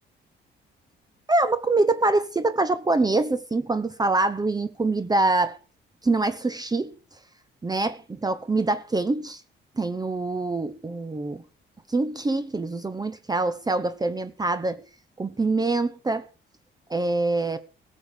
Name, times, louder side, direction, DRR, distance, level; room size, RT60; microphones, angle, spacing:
voice 1, 1.3-5.6 6.0-6.9 7.6-9.4 9.8-11.4 11.9-14.8 15.2-16.3 16.9-17.6, right 2 dB, 20° right, 1.0 m, -24 dB
14.0 x 7.4 x 6.8 m
cardioid pair, 90°, 20 cm